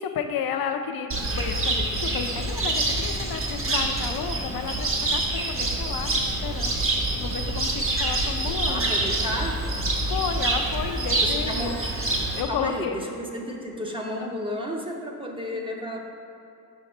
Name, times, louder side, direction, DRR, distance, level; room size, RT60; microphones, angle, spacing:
voice 1, 0.0-6.1 6.4-9.1 10.1-11.8 12.4-13.0 14.2-14.4 15.5-15.6, left 7 dB, 70° left, 6 dB, 0.5 m, -32 dB
Cricket, 1.1-12.4, right 2 dB, 35° right, 0.9 m, -26 dB
voice 2, 8.6-9.6 11.5-11.7 12.5-16.0, equal, 15° right, -1 dB, 0.6 m, -32 dB
5.7 x 5.4 x 4.2 m, 2.7 s
wide cardioid pair, 140°, 37 cm